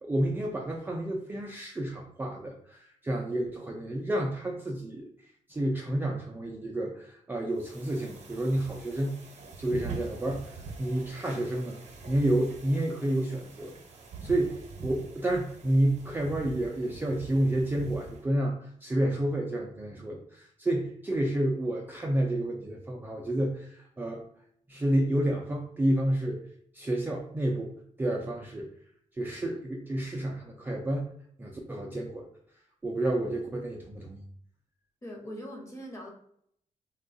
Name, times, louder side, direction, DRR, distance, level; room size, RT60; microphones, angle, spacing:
voice 1, 0.0-5.1 5.5-9.1 9.6-11.8 12.1-13.7 14.2-24.2 24.7-26.4 26.7-27.7 28.0-28.7 29.1-31.1 31.4-32.3 32.8-34.2, right 1 dB, 15° right, -1 dB, 0.3 m, -30 dB
sound 1, 7.6-18.3, right 4 dB, 55° right, 0.7 m, -44 dB
voice 2, 35.0-36.1, equal, 20° left, 0 dB, 0.8 m, -41 dB
3.5 x 2.3 x 2.5 m, 0.67 s
wide cardioid pair, 150°, 13 cm